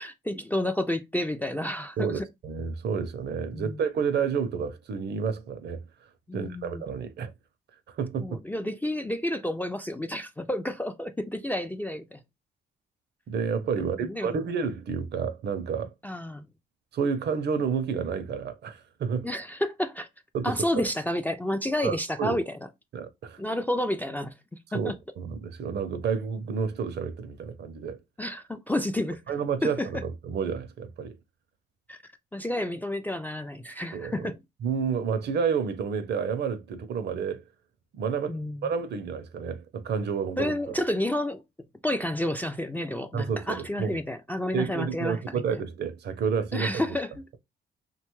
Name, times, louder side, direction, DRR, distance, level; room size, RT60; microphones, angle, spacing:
voice 1, 0.0-2.3 3.5-3.8 6.3-6.8 8.2-12.2 13.8-14.4 16.0-16.5 19.2-20.1 20.4-22.6 23.4-24.4 24.7-24.9 28.2-29.3 29.6-29.9 31.9-32.0 32.3-34.4 38.3-38.7 40.4-41.4 41.8-45.6 46.5-47.2, left 1 dB, 10° left, 0.3 m, -30 dB
voice 2, 2.0-5.8 6.3-7.3 7.9-8.4 13.3-15.9 16.9-19.3 20.3-20.6 21.8-22.4 22.9-23.4 24.7-28.0 29.3-31.2 33.9-34.3 34.6-37.4 37.9-40.6 43.1-44.0 44.5-46.8, right 6 dB, 55° right, 0.5 m, -30 dB
2.8 x 2.2 x 3.0 m
cardioid pair, 90°, 20 cm